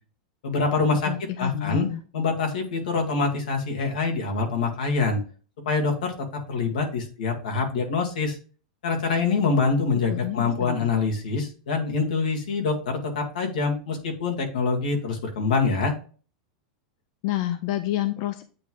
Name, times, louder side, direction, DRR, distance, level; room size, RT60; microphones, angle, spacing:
voice 1, 0.4-1.1 1.4-1.9 2.1-5.2 5.7-6.1 6.5-8.4 8.8-15.9, left 4 dB, 85° left, 2 dB, 1.9 m, -25 dB
voice 2, 1.1-2.0 10.1-10.9 17.2-18.4, left 14 dB, 40° left, 10 dB, 0.4 m, -29 dB
8.6 x 3.1 x 3.7 m, 0.39 s
supercardioid pair, 175°, 4 cm